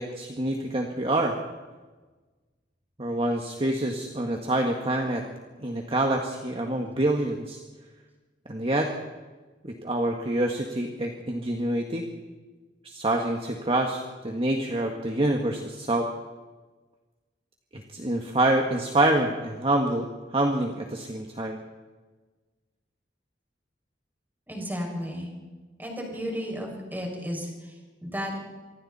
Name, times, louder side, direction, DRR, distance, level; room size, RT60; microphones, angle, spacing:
voice 1, 0.0-1.4 3.0-5.2 5.6-7.6 8.5-8.9 9.6-12.1 12.8-16.1 17.7-21.6, right 1 dB, 30° right, 2 dB, 1.7 m, -26 dB
voice 2, 24.5-25.3 25.8-28.4, equal, 10° right, 0 dB, 6.3 m, -33 dB
27.0 x 24.5 x 4.3 m, 1.3 s
head